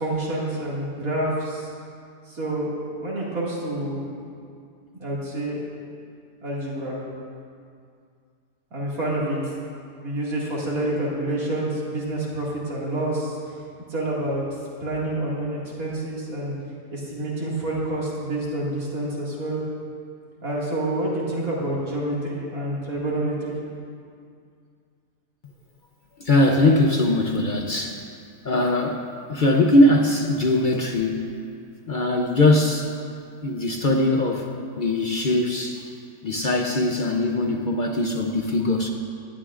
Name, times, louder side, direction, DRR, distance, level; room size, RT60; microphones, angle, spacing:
voice 1, 0.0-1.7 2.3-2.7 3.0-4.2 5.0-5.6 6.4-7.0 8.7-9.4 10.0-13.4 13.9-14.4 14.8-16.6 16.9-19.6 20.4-23.6, right 1 dB, 60° right, -6 dB, 2.7 m, -28 dB
voice 2, 26.2-28.0 28.4-31.4 31.9-32.9 33.4-34.5 34.8-35.9 36.2-38.9, left 1 dB, 55° left, 2 dB, 0.5 m, -21 dB
19.0 x 11.5 x 2.5 m, 2.3 s
omnidirectional pair, 1.7 m